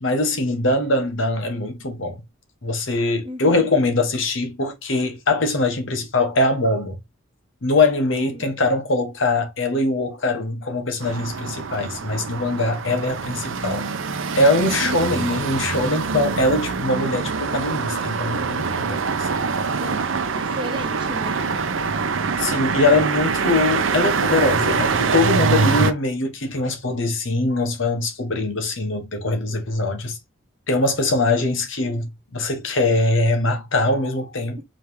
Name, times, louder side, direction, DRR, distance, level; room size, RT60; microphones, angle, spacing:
voice 1, 0.0-2.2 2.6-7.0 7.6-13.9 14.3-19.4 22.4-30.2 30.7-34.6, left 2 dB, 70° left, 1.4 m, -22 dB
voice 2, 3.2-3.7 8.1-8.5 14.8-15.3 19.7-21.4, equal, 25° right, 1.1 m, -35 dB
sound 1, 11.0-25.9, right 5 dB, 75° right, 0.7 m, -24 dB
5.1 x 3.4 x 2.9 m
head